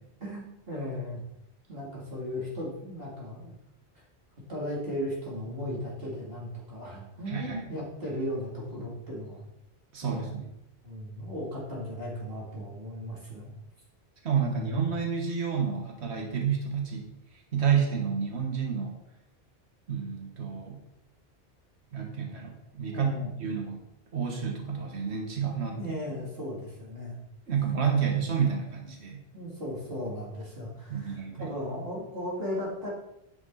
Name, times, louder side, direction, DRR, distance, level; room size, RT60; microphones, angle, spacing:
voice 1, 0.2-1.2 1.7-3.5 4.5-9.4 10.0-10.4 10.8-13.5 14.4-14.8 22.9-23.3 25.8-27.2 29.3-32.9, left 1 dB, 60° right, -6 dB, 2.9 m, -36 dB
voice 2, 7.3-7.6 9.9-10.5 14.2-17.1 17.5-18.9 19.9-20.8 21.9-23.8 24.1-25.8 27.5-29.2 30.9-31.5, right 7 dB, 75° right, 2 dB, 1.6 m, -29 dB
9.6 x 6.0 x 4.1 m, 0.83 s
omnidirectional pair, 1.1 m